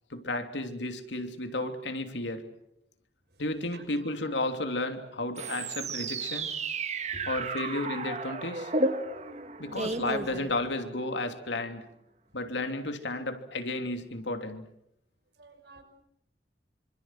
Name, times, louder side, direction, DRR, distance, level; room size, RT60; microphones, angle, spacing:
voice 1, 0.1-2.5 3.4-6.6 7.3-8.7 9.6-11.8 12.3-14.7, left 2 dB, 90° left, 3.1 m, -33 dB
sound 1, 5.4-11.0, right 3 dB, 40° right, 1.7 m, -33 dB
voice 2, 7.1-7.6 8.9-9.1 15.4-15.8, right 2 dB, 70° right, 5.9 m, -49 dB
26.5 x 26.0 x 7.6 m
head